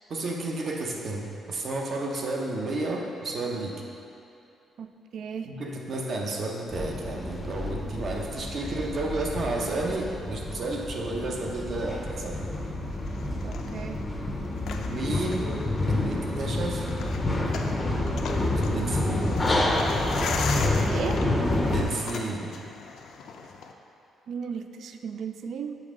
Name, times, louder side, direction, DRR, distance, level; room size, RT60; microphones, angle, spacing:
voice 1, 0.1-3.8 5.5-12.4 14.8-15.5 15.9-16.9 18.6-19.4 21.7-22.5, right 2 dB, 45° right, 0 dB, 0.7 m, -31 dB
voice 2, 4.8-5.5 13.4-14.0 20.7-21.2 24.3-25.8, right 6 dB, 60° right, 7 dB, 0.3 m, -35 dB
sound 1, 6.7-21.8, left 1 dB, 15° left, 0.6 m, -28 dB
sound 2, 12.8-23.7, left 5 dB, 65° left, 0.4 m, -39 dB
7.0 x 4.3 x 3.6 m, 2.8 s
cardioid pair, 145°, 0 cm